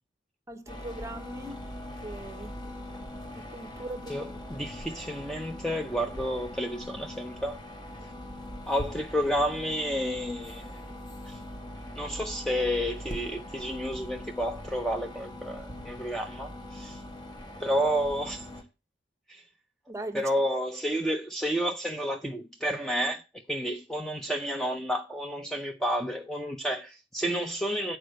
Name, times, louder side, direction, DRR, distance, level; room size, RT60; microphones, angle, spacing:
voice 1, 0.5-1.6 2.0-2.5 3.3-4.7 19.9-20.3, right 1 dB, 15° right, 1.0 m, -40 dB
sound 1, 0.7-18.6, left 1 dB, 25° left, 1.2 m, -41 dB
voice 2, 4.1-7.6 8.7-10.8 11.3-11.4 12.0-17.0 17.6-18.5 19.3-19.4 20.1-23.2 23.5-28.0, equal, 5° left, 0.5 m, -30 dB
8.3 x 4.4 x 6.4 m
head